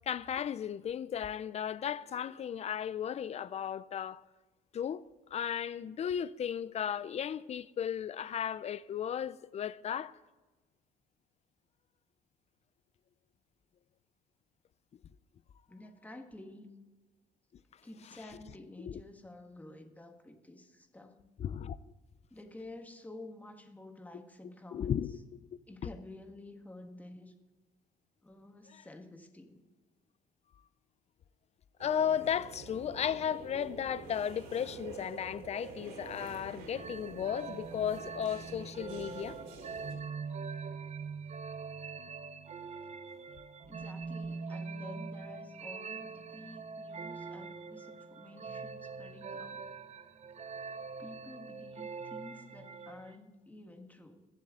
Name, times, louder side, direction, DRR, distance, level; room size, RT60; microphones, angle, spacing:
voice 1, 0.1-4.2 4.7-5.0 5.3-10.1 18.8-19.0 21.4-21.7 24.7-25.1 31.8-39.4, left 9 dB, 40° left, 0.5 m, -35 dB
voice 2, 15.7-16.7 17.8-21.2 22.3-25.2 25.7-27.4 28.2-29.6 43.7-49.7 51.0-54.3, left 1 dB, 10° left, 1.5 m, -50 dB
sound 1, 31.8-39.9, right 4 dB, 90° right, 3.4 m, -47 dB
sound 2, 36.7-53.2, right 5 dB, 40° right, 0.8 m, -43 dB
21.5 x 7.4 x 3.7 m
cardioid pair, 110°, 17 cm